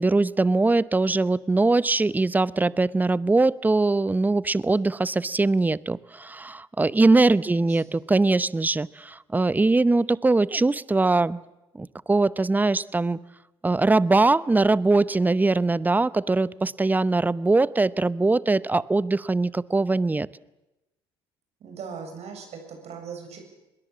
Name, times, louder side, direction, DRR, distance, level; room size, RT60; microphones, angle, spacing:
voice 1, 0.0-11.4 11.7-13.2 13.6-20.3, right 3 dB, 10° right, 20 dB, 0.7 m, -22 dB
voice 2, 7.3-8.0 21.6-23.4, right 6 dB, 50° right, 4 dB, 7.5 m, -40 dB
25.0 x 21.5 x 7.4 m, 0.97 s
hypercardioid pair, 60°, 14 cm